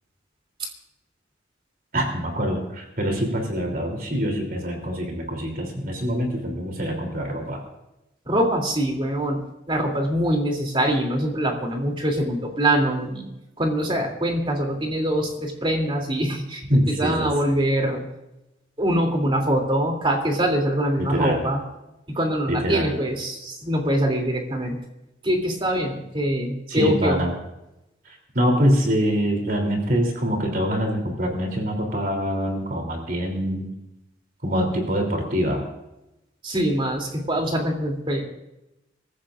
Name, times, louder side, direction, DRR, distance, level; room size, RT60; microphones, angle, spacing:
voice 1, 1.9-7.6 16.7-17.3 21.0-21.4 22.5-23.0 26.7-27.3 28.0-33.7 34.4-35.6, equal, 50° right, 2 dB, 3.2 m, -24 dB
voice 2, 8.3-9.4 9.7-13.3 13.6-18.0 18.8-21.6 22.1-24.8 25.2-27.2 36.4-38.2, right 1 dB, 30° right, 2 dB, 3.0 m, -24 dB
25.0 x 15.0 x 2.6 m, 0.93 s
head